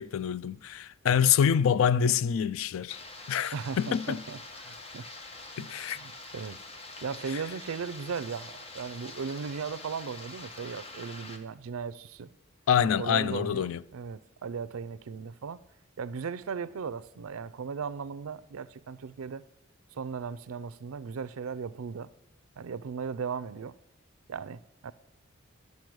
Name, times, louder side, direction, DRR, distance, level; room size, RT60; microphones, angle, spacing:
voice 1, 0.0-3.0 3.3-4.2 5.6-6.0 12.7-13.8, left 8 dB, 75° left, 0.3 m, -26 dB
sound 1, 2.9-11.4, left 2 dB, 30° left, 0.9 m, -45 dB
voice 2, 3.5-5.1 5.6-6.6 7.0-12.3 12.9-15.6 16.0-19.4 19.9-22.1 22.6-23.7 24.3-24.9, right 6 dB, 85° right, 0.4 m, -37 dB
12.0 x 5.4 x 6.2 m
head